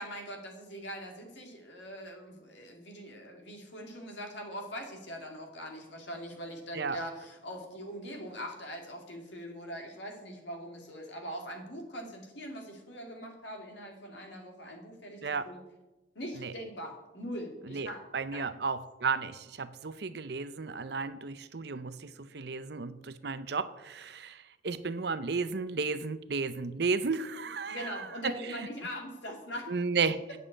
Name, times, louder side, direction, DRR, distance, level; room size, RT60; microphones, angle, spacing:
voice 1, 0.0-15.6 16.1-18.0 18.3-18.5 27.7-29.7, equal, 65° left, 2 dB, 2.4 m, -42 dB
voice 2, 17.7-28.7 29.7-30.2, right 4 dB, 55° right, 13 dB, 0.6 m, -33 dB
8.3 x 7.5 x 8.8 m, 1.0 s
head